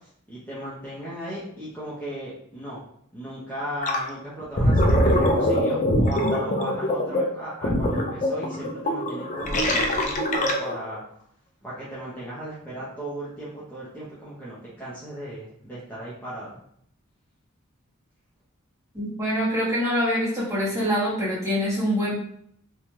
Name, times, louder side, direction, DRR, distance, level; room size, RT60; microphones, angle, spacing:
voice 1, 0.3-2.8 3.1-11.0 11.6-16.6, right 1 dB, 10° left, -10 dB, 0.7 m, -36 dB
Gurgling, 3.8-4.1 4.4-10.9, equal, 35° left, 0.4 m, -23 dB
voice 2, 18.9-22.2, equal, 15° right, -8 dB, 1.2 m, -25 dB
2.7 x 2.3 x 3.0 m, 0.67 s
head